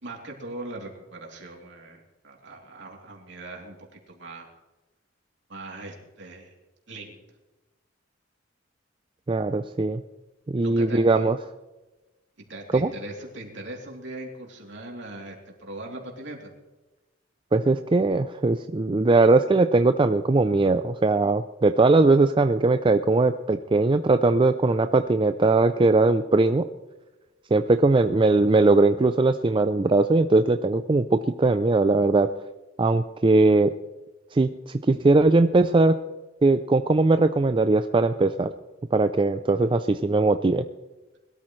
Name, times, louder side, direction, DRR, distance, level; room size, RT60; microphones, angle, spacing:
voice 1, 0.0-4.5 5.5-6.5 6.9-7.2 10.6-11.2 12.5-16.5, right 2 dB, 65° right, 0 dB, 3.1 m, -40 dB
voice 2, 9.3-10.0 10.5-11.4 12.7-12.9 17.5-26.7 27.5-32.3 32.8-33.7 34.3-35.9 36.4-38.5 38.9-40.6, right 3 dB, 25° right, 9 dB, 0.4 m, -20 dB
21.5 x 13.0 x 3.2 m, 1.1 s
head